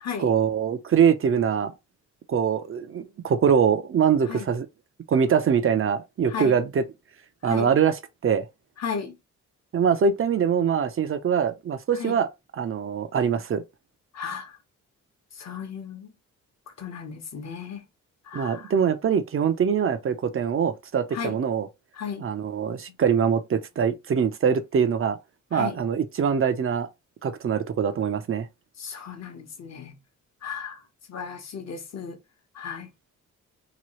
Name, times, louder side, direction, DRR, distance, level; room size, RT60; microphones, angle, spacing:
voice 1, 0.2-1.7 2.3-4.7 5.1-6.8 7.4-8.0 8.2-8.5 9.7-12.3 12.6-13.6 18.3-21.7 22.2-25.2 25.5-26.9 27.2-28.5, right 7 dB, 45° right, 0.6 m, -23 dB
voice 2, 6.3-6.6 7.4-7.7 8.8-9.2 12.0-12.2 14.1-14.6 15.3-16.1 16.7-17.9 18.2-18.7 21.1-21.4 21.9-22.3 25.5-25.8 28.8-30.0 30.4-30.8 31.1-32.2 32.5-32.9, left 6 dB, 55° left, 1.0 m, -35 dB
3.0 x 2.3 x 3.0 m
cardioid pair, 80°, 32 cm